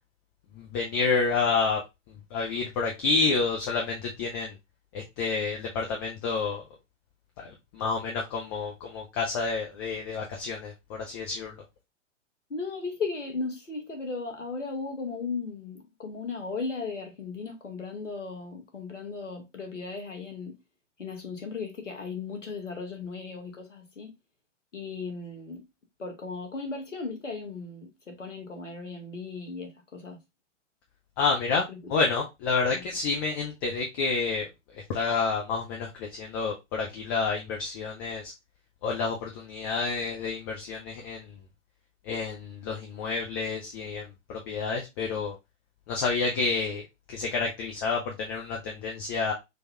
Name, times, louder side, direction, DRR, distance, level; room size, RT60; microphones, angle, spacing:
voice 1, 0.6-1.8 2.3-4.5 4.9-6.6 7.4-11.5 31.2-34.5 34.9-38.3 38.8-41.3 42.1-45.3 45.9-49.3, left 4 dB, 20° left, 0.4 m, -29 dB
voice 2, 12.5-20.6 21.0-24.1 24.7-25.6 26.0-30.2 31.7-31.9 32.7-32.8, left 4 dB, 75° left, 1.3 m, -36 dB
3.8 x 2.3 x 3.0 m
figure-of-eight pair, 110°, 37 cm